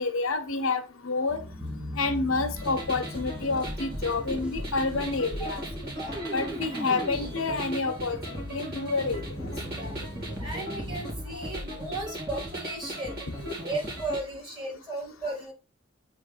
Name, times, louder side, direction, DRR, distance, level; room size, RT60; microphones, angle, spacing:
voice 1, 0.0-1.4 2.0-5.6 6.3-9.2 11.3-11.5 13.4-13.5, left 3 dB, 75° left, 1.0 m, -29 dB
sound 1, 1.3-11.1, left 1 dB, 5° right, 1.0 m, -41 dB
sound 2, 2.6-14.2, equal, 50° right, 2.5 m, -37 dB
voice 2, 5.4-5.7 6.0-6.2 9.7-9.9 10.4-13.2 13.6-15.5, right 2 dB, 25° right, 3.5 m, -35 dB
7.8 x 3.5 x 4.9 m
head